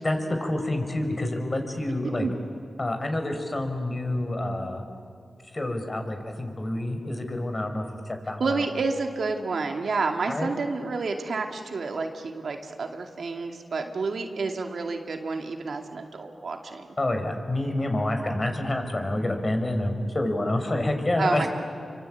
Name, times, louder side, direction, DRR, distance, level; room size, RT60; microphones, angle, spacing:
voice 1, 0.0-2.3 2.8-4.8 5.5-8.6 10.3-10.5 17.0-21.5, left 1 dB, 40° left, 5 dB, 4.7 m, -28 dB
voice 2, 8.4-16.9 21.2-21.5, right 4 dB, 75° right, 3 dB, 2.4 m, -29 dB
28.0 x 24.0 x 8.5 m, 2.3 s
cardioid pair, 50°, 0 cm